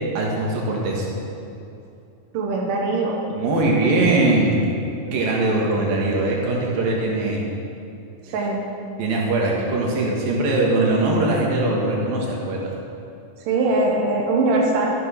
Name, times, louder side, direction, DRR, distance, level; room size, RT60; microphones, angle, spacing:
voice 1, 0.2-1.1 3.3-4.6 5.1-7.5 9.0-12.6, right 2 dB, 90° right, -2 dB, 3.7 m, -21 dB
voice 2, 2.3-3.2 8.3-8.6 13.5-14.9, right 2 dB, 70° right, -2 dB, 2.9 m, -21 dB
13.5 x 9.1 x 5.8 m, 2.7 s
omnidirectional pair, 4.0 m